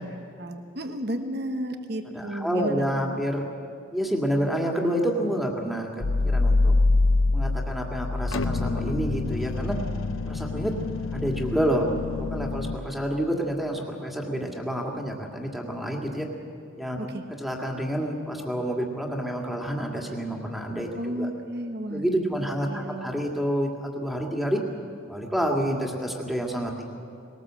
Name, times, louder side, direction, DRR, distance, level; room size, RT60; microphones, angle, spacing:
voice 1, 0.0-3.2 17.0-17.2 20.9-23.1, right 1 dB, 55° right, 6 dB, 1.2 m, -33 dB
voice 2, 2.1-3.5 3.9-6.7 7.3-9.8 10.3-10.7 11.1-11.9 12.2-16.3 16.8-17.1 17.4-21.3 21.9-24.6 25.1-26.9, equal, ahead, 0 dB, 2.0 m, -28 dB
sound 1, 6.0-12.8, left 3 dB, 80° left, 0.7 m, -25 dB
20.5 x 18.5 x 7.5 m, 2.6 s
head